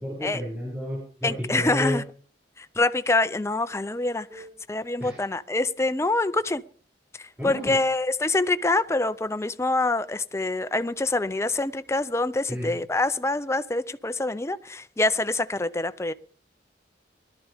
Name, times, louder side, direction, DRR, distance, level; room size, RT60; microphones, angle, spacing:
voice 1, 0.0-2.0 4.3-4.5 5.0-5.2 7.4-7.7 12.5-12.8, left 1 dB, 15° right, 6.2 m, -31 dB
voice 2, 1.2-2.0 2.6-6.6 7.2-16.1, left 2 dB, 15° left, 0.5 m, -26 dB
20.5 x 12.5 x 3.5 m
head